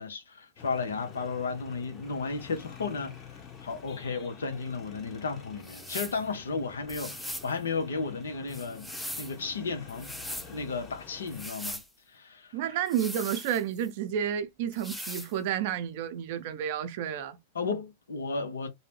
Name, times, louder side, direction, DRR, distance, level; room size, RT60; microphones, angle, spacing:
voice 1, 0.0-8.9 9.2-10.2 10.5-11.8 12.1-12.8 17.5-18.7, left 4 dB, 80° left, 0.7 m, -34 dB
sound 1, 0.6-11.5, left 6 dB, 30° left, 0.8 m, -48 dB
sound 2, 5.6-6.2 6.9-7.5 8.5-9.4 9.9-10.5 11.3-11.9 12.9-13.9 14.7-15.3, equal, ahead, 0.5 m, -39 dB
voice 2, 12.5-17.4, right 9 dB, 55° right, 0.6 m, -31 dB
2.7 x 2.0 x 3.1 m
hypercardioid pair, 100°, 0 cm